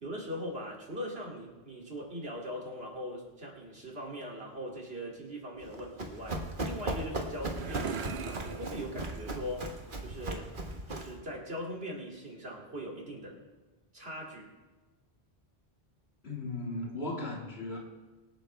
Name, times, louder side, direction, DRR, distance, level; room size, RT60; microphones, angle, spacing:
voice 1, 0.0-9.8 10.0-10.5 10.9-13.4 13.9-14.5, equal, 75° right, -2 dB, 3.0 m, -40 dB
Run, 5.6-11.2, right 2 dB, 55° right, 1.6 m, -37 dB
sound 1, 6.7-10.3, right 6 dB, 90° right, 1.1 m, -42 dB
voice 2, 16.2-17.8, left 2 dB, 80° left, -1 dB, 2.5 m, -36 dB
24.5 x 8.7 x 3.4 m, 1.2 s
omnidirectional pair, 1.0 m